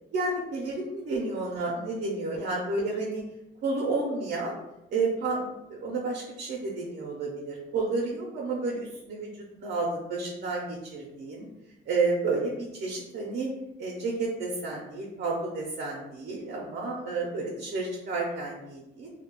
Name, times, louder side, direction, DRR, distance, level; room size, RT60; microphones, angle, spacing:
voice 1, 0.1-3.2 3.6-4.5 4.9-11.5 11.9-13.5 13.8-19.1, right 3 dB, 60° right, -2 dB, 0.5 m, -31 dB
2.2 x 2.1 x 2.9 m, 0.93 s
cardioid pair, 90°, 20 cm